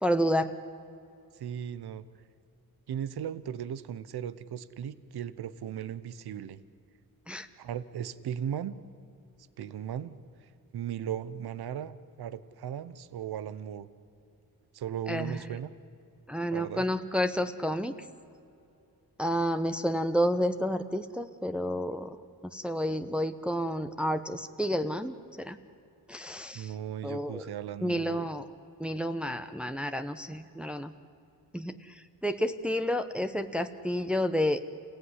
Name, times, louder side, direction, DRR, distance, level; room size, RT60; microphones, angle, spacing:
voice 1, 0.0-0.5 7.3-7.5 15.1-15.4 16.3-17.9 19.2-22.2 22.5-25.6 26.1-26.7 27.0-27.4 27.8-28.5 28.8-30.9 31.5-31.7 32.2-34.6, equal, 5° right, 8 dB, 1.0 m, -30 dB
voice 2, 1.4-2.0 2.9-6.6 7.6-8.7 9.6-10.1 10.7-13.9 14.7-15.7 16.5-16.8 26.5-28.3, right 9 dB, 85° right, 15 dB, 0.9 m, -37 dB
28.5 x 16.0 x 9.8 m, 2.7 s
cardioid pair, 80°, 37 cm